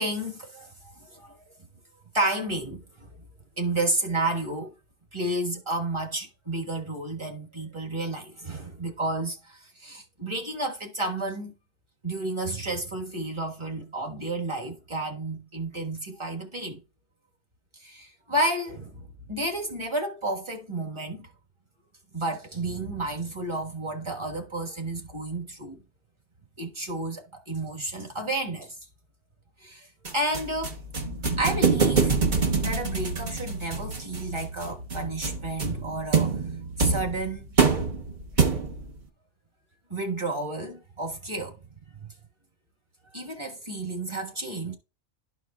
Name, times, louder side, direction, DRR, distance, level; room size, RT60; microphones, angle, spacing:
voice 1, 0.0-1.5 2.1-3.1 3.6-4.7 5.1-11.5 12.0-16.8 17.7-21.3 22.1-25.8 26.6-28.7 29.6-30.8 31.4-32.2 32.6-36.4 36.8-37.4 39.9-41.6 42.0-42.1 43.1-44.7, right 2 dB, 20° right, 1.4 m, -31 dB
sound 1, 30.1-38.9, right 5 dB, 40° right, 1.1 m, -26 dB
12.5 x 4.7 x 2.3 m
omnidirectional pair, 1.4 m